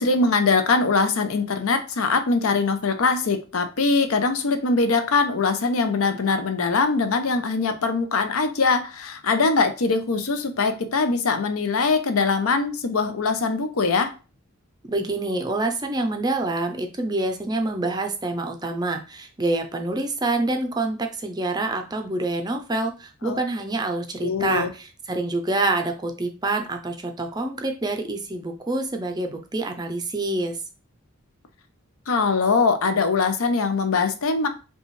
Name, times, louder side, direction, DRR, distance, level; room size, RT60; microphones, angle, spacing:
voice 1, 0.0-14.1 23.2-23.4 24.2-24.7 32.1-34.5, left 4 dB, 80° left, 0.6 m, -22 dB
voice 2, 14.9-30.6, right 2 dB, 20° right, 0.4 m, -26 dB
5.3 x 2.3 x 3.1 m
head